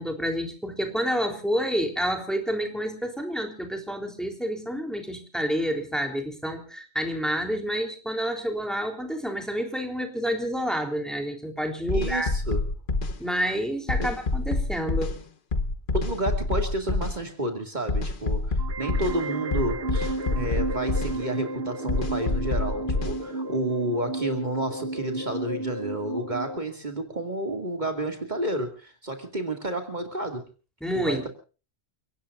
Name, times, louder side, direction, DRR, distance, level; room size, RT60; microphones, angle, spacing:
voice 1, 0.0-12.3 13.2-15.2 30.8-31.3, equal, ahead, 4 dB, 3.7 m, -29 dB
sound 1, 11.9-13.2 13.9-15.2 15.5-17.2 17.9-19.2 19.5-21.2 21.9-23.2, left 3 dB, 50° left, 1.3 m, -27 dB
voice 2, 11.9-12.7 15.9-30.4 30.9-31.3, right 1 dB, 45° right, 4 dB, 2.6 m, -31 dB
sound 2, 18.6-26.6, right 2 dB, 75° right, 1.7 m, -33 dB
30.0 x 18.0 x 2.6 m, 0.37 s
omnidirectional pair, 1.1 m